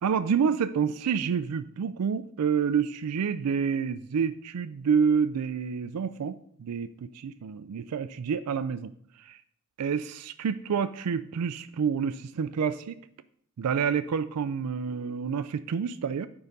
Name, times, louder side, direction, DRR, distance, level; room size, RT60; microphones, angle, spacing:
voice 1, 0.0-8.9 9.2-9.4 9.8-13.0 13.6-16.3, right 6 dB, 85° right, 12 dB, 0.4 m, -28 dB
8.0 x 4.7 x 5.3 m, 0.65 s
head